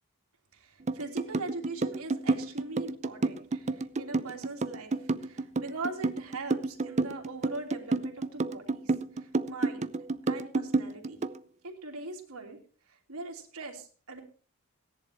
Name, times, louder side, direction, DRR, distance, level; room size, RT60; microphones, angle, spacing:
voice 1, 0.5-9.9 10.3-11.2 11.6-12.6 12.9-14.2, right 3 dB, 70° right, 0 dB, 3.1 m, -41 dB
sound 1, 0.9-11.4, right 3 dB, 30° right, 0.6 m, -30 dB
17.0 x 11.0 x 4.4 m, 0.40 s
head